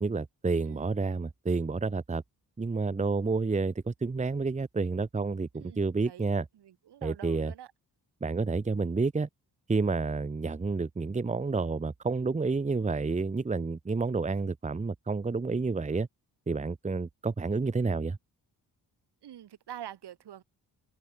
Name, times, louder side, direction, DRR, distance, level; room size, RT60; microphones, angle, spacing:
voice 1, 0.0-2.2 2.6-6.4 7.0-7.5 8.2-9.3 9.7-16.1 16.5-18.2, right 4 dB, 20° right, 0.9 m, -29 dB
voice 2, 5.5-7.7 19.2-20.4, right 11 dB, 90° right, 7.3 m, -46 dB
cardioid pair, 85°, 39 cm